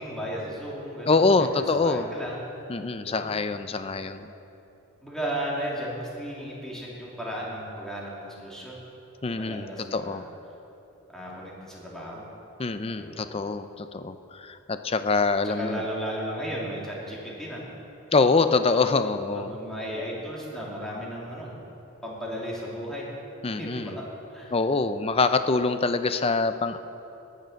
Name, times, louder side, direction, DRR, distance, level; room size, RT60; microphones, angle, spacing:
voice 1, 0.0-1.3 1.7-2.4 3.1-3.3 5.0-8.8 9.3-10.3 11.1-12.3 13.0-13.3 15.4-17.7 19.2-21.5 22.0-23.1 23.6-24.5, equal, ahead, -5 dB, 2.5 m, -35 dB
voice 2, 1.1-2.1 2.7-4.3 9.2-10.3 12.6-15.8 18.1-19.5 23.4-24.0 24.5-26.8, left 3 dB, 25° left, 10 dB, 0.4 m, -25 dB
18.5 x 6.7 x 6.4 m, 2.9 s
head